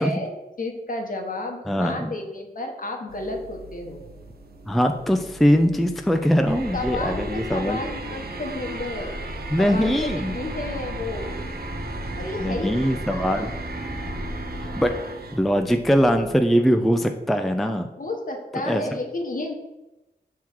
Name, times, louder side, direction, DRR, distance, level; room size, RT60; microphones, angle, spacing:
voice 1, 0.0-4.0 6.7-9.2 9.6-11.3 12.2-12.8 13.1-13.5 18.0-19.5, left 2 dB, 55° left, 3 dB, 1.1 m, -32 dB
voice 2, 1.7-2.1 4.7-7.8 9.5-10.3 12.4-13.5 14.6-14.9 15.3-17.9 18.7-18.8, equal, ahead, 6 dB, 0.4 m, -21 dB
sound 1, 3.1-16.3, right 2 dB, 70° right, 0.7 m, -37 dB
sound 2, 6.5-14.9, left 1 dB, 25° left, 1.1 m, -36 dB
6.1 x 3.7 x 4.5 m, 1.0 s
wide cardioid pair, 85°, 17 cm